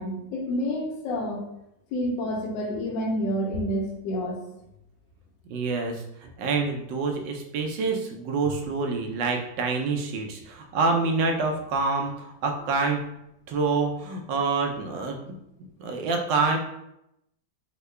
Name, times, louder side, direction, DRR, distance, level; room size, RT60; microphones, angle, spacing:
voice 1, 0.0-1.4 1.9-4.4, equal, 70° left, 0 dB, 1.3 m, -29 dB
voice 2, 5.5-13.0 13.5-15.4 15.8-16.6, right 4 dB, 75° right, 2 dB, 1.1 m, -27 dB
3.6 x 2.2 x 3.2 m, 0.83 s
omnidirectional pair, 2.2 m